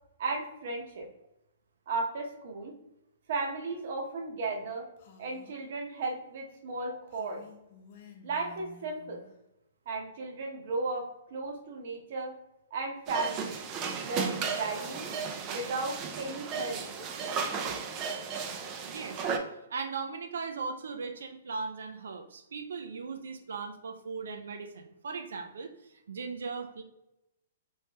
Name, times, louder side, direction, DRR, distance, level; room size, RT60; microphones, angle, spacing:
voice 1, 0.2-1.1 1.9-2.8 3.3-4.8 5.2-7.4 8.2-9.2 9.9-12.3 12.7-13.6 14.0-15.1 15.5-16.9, right 3 dB, 55° right, 1 dB, 0.8 m, -35 dB
Female speech woman speaking, 5.0-5.6 7.1-9.4, left 5 dB, 45° left, 0.6 m, -53 dB
sound 1, 13.1-19.4, right 5 dB, 25° right, 0.4 m, -34 dB
voice 2, 18.8-19.2 19.7-25.7 26.1-26.8, right 4 dB, 85° right, 5 dB, 0.4 m, -38 dB
3.2 x 3.2 x 2.8 m, 0.88 s
hypercardioid pair, 160°, 0 cm